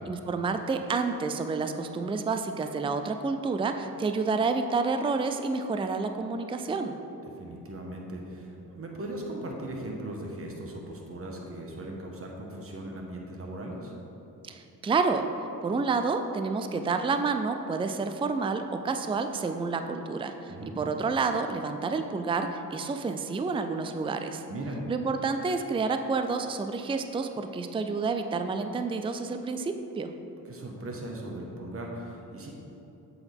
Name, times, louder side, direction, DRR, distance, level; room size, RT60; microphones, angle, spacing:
voice 1, 0.1-7.0 14.4-15.3 15.6-24.4 24.9-30.1, right 4 dB, 15° right, 7 dB, 0.4 m, -29 dB
voice 2, 7.3-13.9 20.5-20.7 24.5-24.8 30.4-32.5, right 1 dB, 40° right, 0 dB, 1.4 m, -38 dB
8.0 x 7.1 x 3.5 m, 3.0 s
cardioid pair, 75°, 35 cm